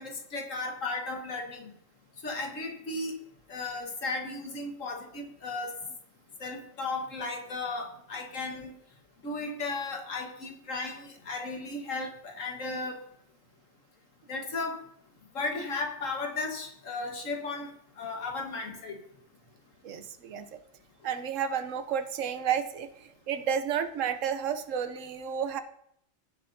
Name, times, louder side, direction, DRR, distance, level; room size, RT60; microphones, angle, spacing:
voice 1, 0.0-1.7 2.2-3.1 3.5-5.7 6.4-8.7 9.2-13.0 14.3-14.8 15.3-17.7 18.0-19.0, left 3 dB, 80° left, 2 dB, 1.8 m, -35 dB
voice 2, 19.8-20.6 21.0-25.6, right 8 dB, 75° right, 9 dB, 1.1 m, -31 dB
15.5 x 7.7 x 2.7 m, 0.70 s
omnidirectional pair, 1.3 m